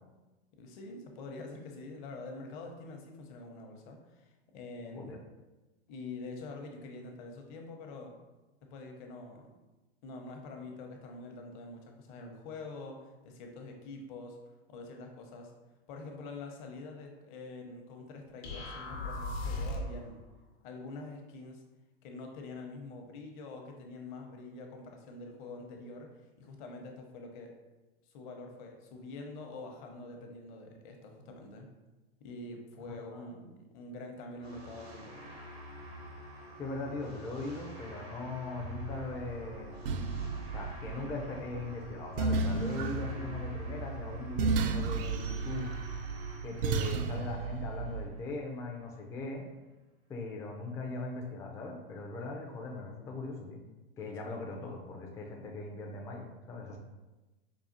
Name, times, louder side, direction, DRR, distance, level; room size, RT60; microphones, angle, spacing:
voice 1, 0.6-5.1 5.9-8.2 8.7-9.5 10.0-14.4 14.7-15.5 15.9-20.2 20.6-21.6 22.0-26.1 26.4-27.5 28.1-31.7 32.2-35.3 54.3-54.4, left 3 dB, 50° left, 3 dB, 0.8 m, -45 dB
sound 1, 18.4-20.0, left 2 dB, 80° left, 1.0 m, -36 dB
voice 2, 33.1-33.5 36.6-39.8 40.5-45.7 46.4-49.5 50.1-53.6 54.0-56.8, left 3 dB, 10° left, 0 dB, 0.3 m, -40 dB
sound 2, 34.4-48.8, equal, 90° right, 1.2 m, -48 dB
sound 3, 38.6-48.1, right 4 dB, 65° right, 0.4 m, -34 dB
4.8 x 2.3 x 2.6 m, 1.1 s
hypercardioid pair, 115°, 30 cm